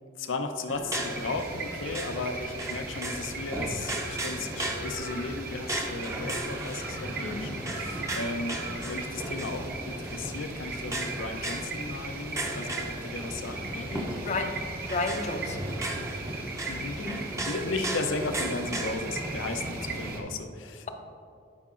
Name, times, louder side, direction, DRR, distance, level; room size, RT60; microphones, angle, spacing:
voice 1, 0.2-13.6 16.7-17.0 17.5-20.9, left 3 dB, 90° left, 6 dB, 0.6 m, -35 dB
sound 1, 0.7-20.2, right 1 dB, 15° right, 0.6 m, -36 dB
sound 2, 1.0-20.2, right 3 dB, 50° right, 0.9 m, -38 dB
voice 2, 7.2-7.6 13.7-14.5 14.9-15.7 17.0-17.3, left 3 dB, 35° left, 5 dB, 0.5 m, -33 dB
12.0 x 5.6 x 2.5 m, 2.5 s
head